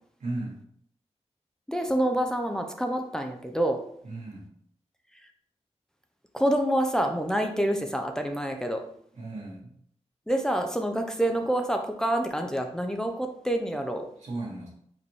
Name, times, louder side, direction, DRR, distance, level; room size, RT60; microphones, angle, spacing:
voice 1, 0.2-0.6 4.0-4.5 9.1-9.7 14.2-14.7, right 2 dB, 85° right, -5 dB, 1.7 m, -35 dB
voice 2, 1.7-3.8 6.3-8.8 10.3-14.1, right 1 dB, 5° left, 4 dB, 0.5 m, -27 dB
4.9 x 3.4 x 3.1 m, 0.66 s
wide cardioid pair, 80°, 12 cm